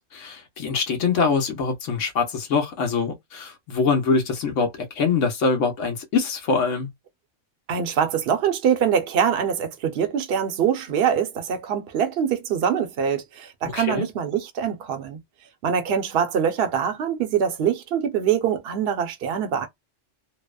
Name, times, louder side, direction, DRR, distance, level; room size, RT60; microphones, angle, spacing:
voice 1, 0.0-6.9 13.7-14.0, left 5 dB, 75° left, 1.2 m, -24 dB
voice 2, 7.7-15.2 15.6-19.7, right 8 dB, 60° right, 0.8 m, -24 dB
2.8 x 2.0 x 2.2 m
omnidirectional pair, 1.3 m